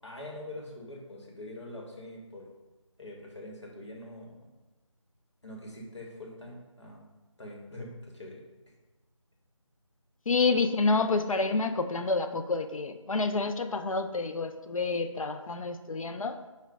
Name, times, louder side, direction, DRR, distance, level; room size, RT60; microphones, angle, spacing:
voice 1, 0.0-2.5 3.0-4.5 5.4-7.1 7.4-8.4, left 1 dB, 60° left, -1 dB, 1.0 m, -44 dB
voice 2, 10.3-16.4, left 3 dB, 85° left, 8 dB, 0.5 m, -28 dB
5.8 x 2.2 x 3.5 m, 1.1 s
figure-of-eight pair, 180°, 17 cm